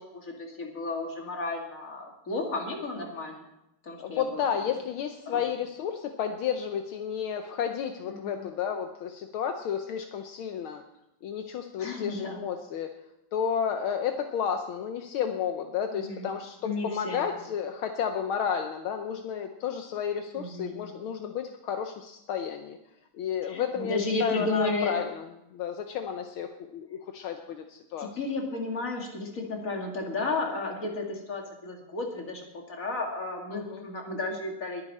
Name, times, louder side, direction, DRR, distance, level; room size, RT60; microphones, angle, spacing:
voice 1, 0.0-3.4 3.8-4.4 5.3-5.4 8.1-8.4 11.8-12.5 15.9-16.3 16.6-17.3 20.4-20.8 23.4-24.9 28.0-34.8, left 3 dB, 40° left, 1 dB, 2.7 m, -33 dB
voice 2, 4.0-10.8 11.2-12.9 13.3-22.8 23.1-28.1 33.5-33.9, left 8 dB, 75° left, 6 dB, 1.7 m, -32 dB
21.0 x 9.7 x 4.3 m, 0.83 s
omnidirectional pair, 2.3 m